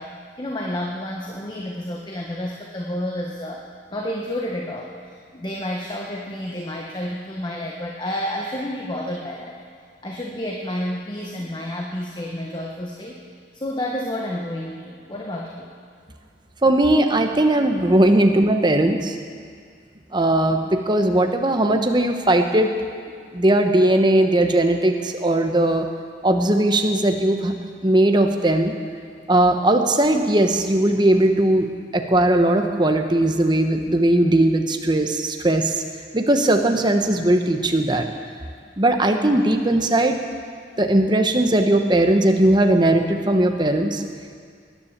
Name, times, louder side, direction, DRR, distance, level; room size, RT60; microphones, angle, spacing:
voice 1, 0.0-3.6 3.9-9.6 10.0-13.2 13.5-15.7, left 1 dB, 25° left, 0 dB, 1.1 m, -30 dB
voice 2, 16.6-19.1 20.1-22.7 23.3-25.9 26.2-27.5 27.8-28.7 29.3-31.7 31.9-35.8 36.1-38.1 38.8-40.2 40.8-44.0, right 1 dB, 25° right, 5 dB, 1.0 m, -18 dB
19.0 x 10.0 x 7.4 m, 2.1 s
head